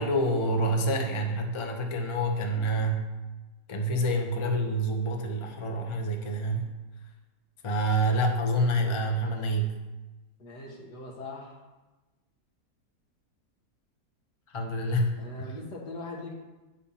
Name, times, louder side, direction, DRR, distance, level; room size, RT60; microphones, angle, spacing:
voice 1, 0.0-3.0 3.7-6.7 7.6-9.8 14.5-15.5, right 1 dB, 30° left, 3 dB, 0.6 m, -27 dB
voice 2, 10.4-11.6 15.1-16.3, left 2 dB, 80° left, -2 dB, 2.1 m, -41 dB
8.7 x 4.5 x 5.5 m, 1.1 s
omnidirectional pair, 1.8 m